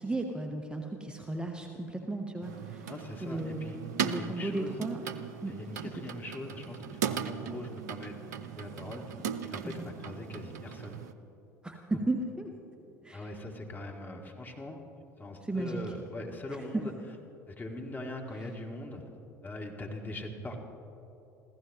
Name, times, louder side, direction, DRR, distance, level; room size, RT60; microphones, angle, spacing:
voice 1, 0.0-2.9 3.2-5.0 5.4-5.5 9.6-9.7 11.6-12.5 13.0-13.3 15.4-15.8 16.7-16.8, right 2 dB, 10° right, 3 dB, 1.3 m, -35 dB
sound 1, 2.4-11.1, right 8 dB, 75° right, 0.6 m, -38 dB
voice 2, 2.9-3.8 4.2-4.8 5.5-8.2 8.6-9.0 9.4-11.0 11.9-12.0 13.1-14.8 15.2-16.9 17.5-19.0 19.4-20.6, left 1 dB, 20° left, 1 dB, 2.2 m, -41 dB
26.5 x 15.5 x 3.0 m, 3.0 s
hypercardioid pair, 70°, 9 cm